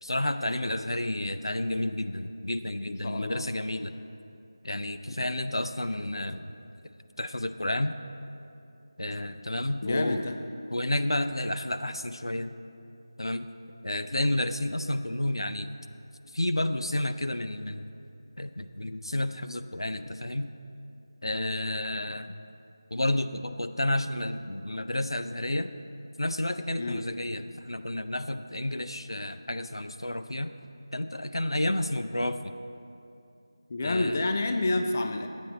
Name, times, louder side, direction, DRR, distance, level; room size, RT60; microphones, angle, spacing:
voice 1, 0.0-3.9 4.6-6.5 7.2-7.9 9.0-10.2 10.7-12.6 13.2-13.5 13.8-15.7 16.3-17.9 18.4-20.5 21.2-22.3 22.9-25.7 26.2-30.5 30.9-32.6 33.8-34.3, left 1 dB, 85° left, 10 dB, 0.5 m, -31 dB
voice 2, 2.8-3.5 5.1-5.2 9.8-10.4 26.8-27.0 33.7-35.3, left 2 dB, 30° left, 6 dB, 0.5 m, -29 dB
11.0 x 8.5 x 4.1 m, 2.7 s
figure-of-eight pair, 165°, 2 cm